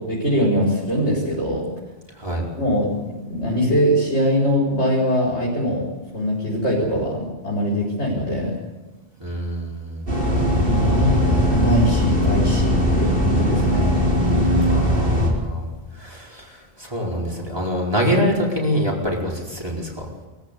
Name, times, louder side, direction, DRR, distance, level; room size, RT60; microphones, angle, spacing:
voice 1, 0.0-1.6 2.6-5.8 6.1-8.5 10.5-14.0, equal, 80° left, -4 dB, 5.0 m, -22 dB
voice 2, 2.1-2.4 9.2-10.1 14.7-15.7 16.0-20.1, equal, 20° right, -2 dB, 4.8 m, -25 dB
sound 1, 10.1-15.3, equal, 55° right, 4.5 m, -19 dB
22.5 x 14.5 x 8.4 m, 1.1 s
omnidirectional pair, 1.2 m